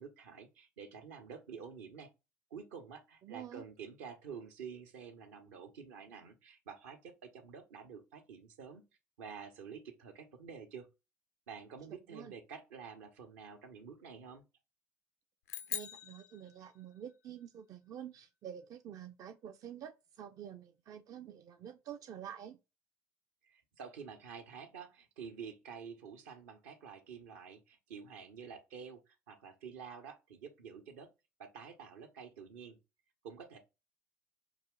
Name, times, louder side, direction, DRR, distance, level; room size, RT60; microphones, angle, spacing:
voice 1, 0.0-2.1 2.5-8.8 9.2-10.9 11.5-14.4 23.5-31.1 31.4-32.8 33.2-33.6, right 6 dB, 75° right, 0.9 m, -49 dB
voice 2, 3.2-3.6 12.1-12.3 15.7-22.6, right 9 dB, 50° right, 0.4 m, -48 dB
sound 1, 15.5-17.1, left 11 dB, 80° left, 0.5 m, -43 dB
5.8 x 2.5 x 3.7 m
hypercardioid pair, 60°, 8 cm